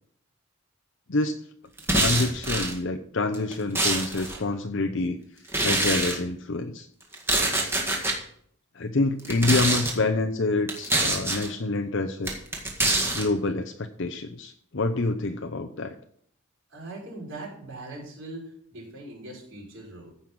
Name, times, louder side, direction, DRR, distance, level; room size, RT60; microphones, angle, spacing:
sound 1, 1.8-2.7 3.3-4.4 5.5-6.2 7.1-8.2 9.2-9.9 10.7-11.5 12.3-13.3, right 2 dB, 10° right, 1.8 m, -25 dB
voice 1, 1.9-5.2 5.6-6.9 8.7-12.3 13.1-16.0, left 2 dB, 60° left, 5 dB, 0.7 m, -27 dB
voice 2, 16.7-20.1, right 2 dB, 60° right, -3 dB, 6.0 m, -41 dB
15.0 x 5.6 x 6.1 m, 0.63 s
head